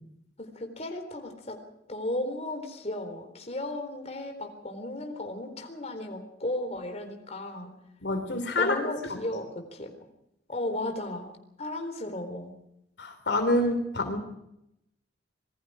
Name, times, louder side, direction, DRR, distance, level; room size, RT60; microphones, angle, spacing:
voice 1, 0.4-1.6 1.9-7.7 8.6-9.9 10.5-11.3 11.6-12.5, left 1 dB, 40° left, 5 dB, 4.0 m, -35 dB
voice 2, 8.0-8.8 9.1-9.2 13.0-14.2, left 1 dB, 70° left, 6 dB, 3.3 m, -27 dB
27.0 x 21.5 x 5.0 m, 0.82 s
head